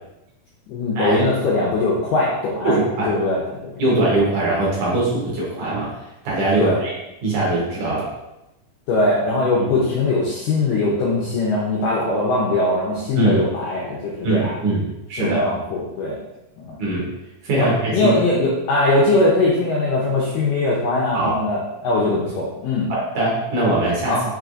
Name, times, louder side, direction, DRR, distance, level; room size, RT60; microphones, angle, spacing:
voice 1, 0.7-2.8 3.1-3.7 6.6-6.8 8.9-14.6 15.2-16.2 16.6-16.8 17.6-22.9 24.1-24.2, left 2 dB, 90° left, -5 dB, 1.9 m, -21 dB
voice 2, 2.6-3.2 3.8-6.0 6.2-6.9 7.2-8.1 13.2-13.4 14.2-15.4 16.8-17.1 17.4-18.1 21.1-21.3 22.9-24.2, right 2 dB, 65° right, -5 dB, 2.0 m, -21 dB
5.9 x 3.3 x 2.5 m, 0.93 s
omnidirectional pair, 4.6 m